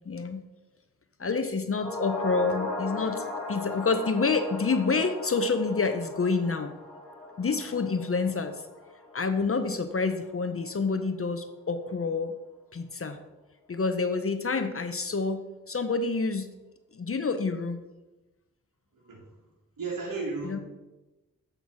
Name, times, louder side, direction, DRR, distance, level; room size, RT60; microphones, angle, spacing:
voice 1, 0.1-0.4 1.2-6.7 7.4-8.6 9.1-12.3 12.7-13.2 13.7-16.5 16.9-17.8 20.4-20.6, left 4 dB, 40° left, 9 dB, 0.7 m, -28 dB
sound 1, 1.7-10.2 10.5-10.6, left 2 dB, 5° left, 2.8 m, -37 dB
voice 2, 18.9-19.3 19.8-20.6, right 3 dB, 75° right, -3 dB, 1.8 m, -34 dB
8.1 x 3.9 x 6.0 m, 1.1 s
cardioid pair, 40°, 33 cm